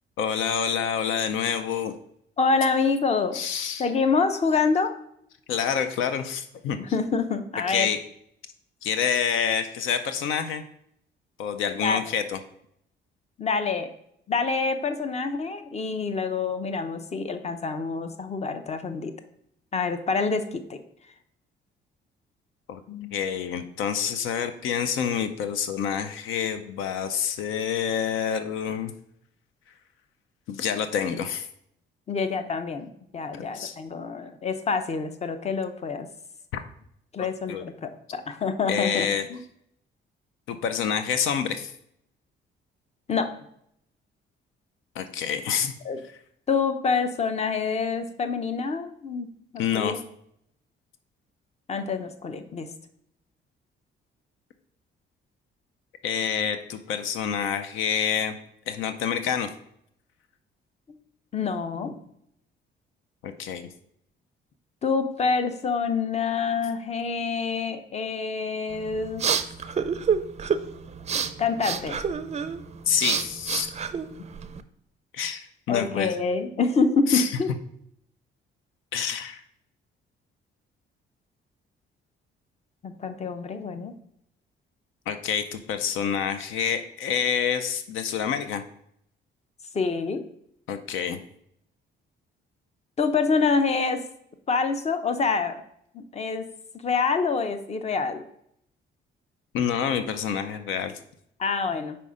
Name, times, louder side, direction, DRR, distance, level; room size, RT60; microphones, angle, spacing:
voice 1, 0.2-1.9 3.3-3.9 5.5-6.8 7.7-8.0 8.8-10.6 11.4-12.4 22.7-22.8 23.1-28.9 30.5-31.5 33.3-33.8 37.2-37.6 38.7-39.3 40.5-41.7 45.0-45.7 49.6-50.0 56.0-58.4 58.7-59.5 63.2-63.7 72.9-73.7 75.1-76.1 77.1-77.3 78.9-79.4 85.1-88.6 90.7-91.2 99.5-100.9, left 7 dB, 85° left, 9 dB, 0.5 m, -27 dB
voice 2, 2.4-3.4 3.8-4.9 6.8-7.9 11.8-12.0 13.4-13.9 14.3-19.1 19.7-20.8 22.9-23.1 32.1-36.1 37.1-39.4 43.1-43.3 45.8-46.0 46.5-50.0 51.7-52.7 61.3-62.0 64.8-69.2 71.4-72.0 75.7-77.5 82.8-83.9 89.7-90.2 93.0-94.0 94.5-95.6 95.9-96.5 96.7-98.2 101.4-102.0, left 4 dB, 35° left, 9 dB, 0.7 m, -26 dB
sound 1, 68.7-74.6, right 6 dB, 35° right, 0.4 m, -29 dB
5.3 x 4.3 x 4.8 m, 0.72 s
cardioid pair, 90°, 20 cm